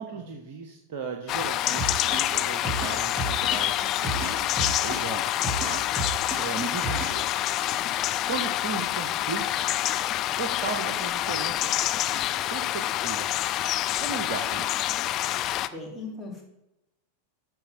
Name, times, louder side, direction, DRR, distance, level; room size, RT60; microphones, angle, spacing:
voice 1, 0.0-5.2 5.6-7.3 7.6-7.9 8.3-9.7 10.4-11.7 12.1-12.2 12.5-13.3 14.0-14.8, right 6 dB, 50° right, 3 dB, 1.0 m, -36 dB
sound 1, 1.3-15.7, left 13 dB, 35° left, 0.4 m, -27 dB
sound 2, 1.8-7.2, right 3 dB, 30° right, 1.7 m, -33 dB
voice 2, 15.7-16.4, left 2 dB, ahead, -4 dB, 2.9 m, -38 dB
13.0 x 4.3 x 5.9 m, 0.91 s
figure-of-eight pair, 90°, 0 cm